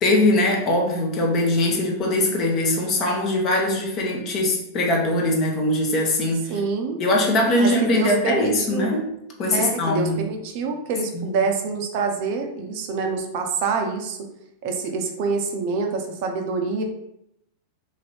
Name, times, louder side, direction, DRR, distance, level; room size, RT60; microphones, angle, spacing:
voice 1, 0.0-6.5 7.0-9.1 9.4-10.2 11.1-11.4, left 1 dB, 35° left, 0 dB, 0.7 m, -21 dB
voice 2, 6.5-7.0 7.6-8.9 9.5-14.2 14.6-16.8, right 4 dB, 45° right, 3 dB, 0.4 m, -26 dB
2.6 x 2.6 x 3.3 m, 0.78 s
figure-of-eight pair, 90°, 0 cm